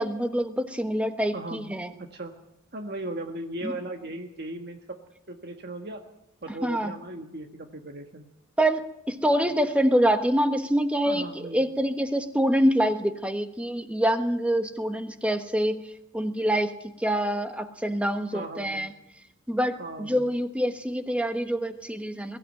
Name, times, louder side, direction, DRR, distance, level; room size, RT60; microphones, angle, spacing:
voice 1, 0.0-1.9 3.6-3.7 6.6-6.9 8.6-11.3 11.5-15.9 16.1-16.7 17.0-18.9 19.5-22.4, equal, 5° right, 8 dB, 1.3 m, -25 dB
voice 2, 1.3-1.7 2.0-2.3 2.7-5.0 5.3-6.0 6.4-8.3 9.4-9.5 11.0-11.6 18.3-18.9 19.8-20.3, right 2 dB, 50° right, 4 dB, 1.6 m, -37 dB
22.5 x 15.0 x 9.2 m, 0.83 s
head